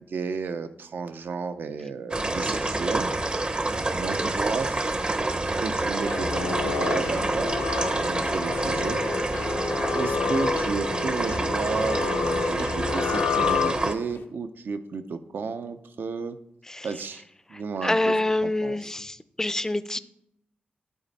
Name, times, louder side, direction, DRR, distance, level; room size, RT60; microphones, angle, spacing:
voice 1, 0.0-3.4 3.9-5.0 5.4-9.0 9.9-16.4 16.8-17.2 17.5-18.2 18.4-18.8, right 5 dB, 70° right, 10 dB, 0.6 m, -33 dB
sound 1, 2.1-14.0, right 2 dB, 30° right, 0.6 m, -27 dB
sound 2, 6.0-14.2, left 6 dB, 90° left, 0.6 m, -29 dB
voice 2, 17.5-20.0, left 2 dB, 15° left, 14 dB, 0.4 m, -27 dB
12.0 x 4.1 x 4.0 m, 0.78 s
cardioid pair, 75°, 4 cm